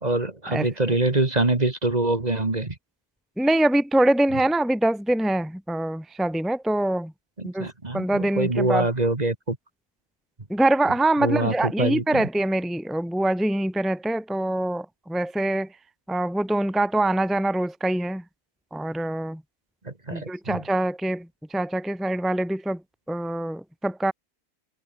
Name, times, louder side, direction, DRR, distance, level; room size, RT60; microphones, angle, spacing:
voice 1, 0.0-2.7 7.4-9.6 11.2-12.2 19.9-20.6, right 2 dB, 25° right, 2.0 m, -25 dB
voice 2, 3.4-7.1 7.4-7.7 7.9-8.9 10.5-15.7 16.1-18.2 18.7-19.4 20.1-21.2 21.5-22.8 23.1-24.1, right 1 dB, ahead, 1.5 m, -24 dB
omnidirectional pair, 1.6 m